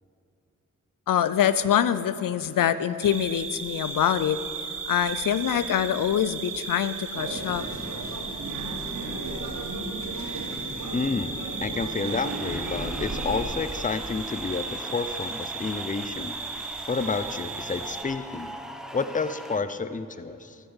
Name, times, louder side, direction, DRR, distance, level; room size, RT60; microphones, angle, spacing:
voice 1, 1.1-4.4 4.9-7.7, left 9 dB, 85° left, 14 dB, 0.5 m, -24 dB
sound 1, 3.0-18.0, right 5 dB, 85° right, 1.1 m, -36 dB
sound 2, 7.1-13.4, right 1 dB, 65° right, 2.8 m, -35 dB
voice 2, 10.9-16.3 16.9-18.5 18.9-20.6, left 4 dB, 25° left, 12 dB, 0.6 m, -30 dB
sound 3, 12.1-19.6, equal, ahead, 0.9 m, -41 dB
12.5 x 9.2 x 7.2 m, 2.8 s
cardioid pair, 60°, 32 cm